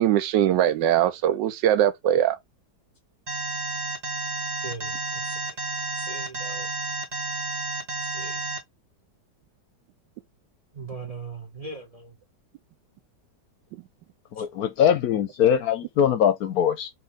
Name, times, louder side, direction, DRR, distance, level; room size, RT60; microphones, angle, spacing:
voice 1, 0.0-2.4, right 11 dB, 80° right, 1.3 m, -21 dB
Alarm, 3.3-8.6, right 3 dB, 25° right, 1.1 m, -31 dB
voice 2, 4.6-5.6 6.0-6.7 8.1-8.4 10.7-12.1, right 3 dB, 65° right, 0.3 m, -39 dB
voice 3, 14.3-16.9, left 9 dB, 70° left, 1.0 m, -22 dB
4.4 x 2.9 x 3.5 m
omnidirectional pair, 1.9 m